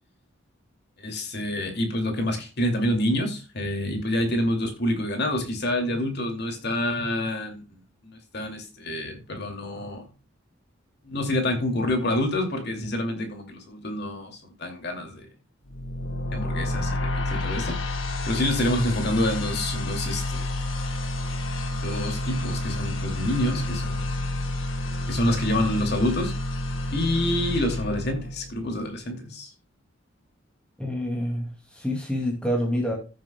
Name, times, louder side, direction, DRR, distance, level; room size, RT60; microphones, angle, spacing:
voice 1, 1.0-7.8 8.0-10.0 11.0-15.3 16.3-17.8 18.2-20.5 21.7-24.2 25.1-26.3 26.9-29.5, left 1 dB, 55° left, 4 dB, 2.6 m, -27 dB
sound 1, 15.7-28.8, left 1 dB, 80° left, 1.9 m, -29 dB
voice 2, 30.8-32.9, equal, 5° left, 0 dB, 2.4 m, -27 dB
15.5 x 7.5 x 2.3 m, 0.32 s
head